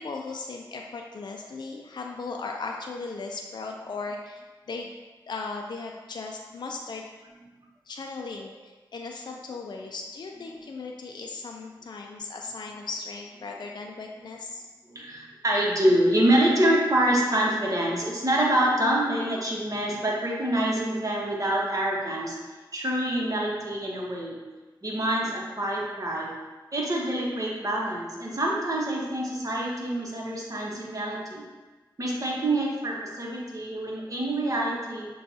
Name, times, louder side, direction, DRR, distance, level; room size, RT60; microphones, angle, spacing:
voice 1, 0.0-4.9 5.3-7.0 7.9-14.7, left 3 dB, 60° left, 1 dB, 0.4 m, -37 dB
voice 2, 14.9-22.4 22.7-24.4 24.8-26.3 26.7-31.4 32.0-35.1, right 1 dB, 40° right, -3 dB, 1.0 m, -26 dB
6.4 x 2.3 x 2.7 m, 1.3 s
cardioid pair, 45°, 8 cm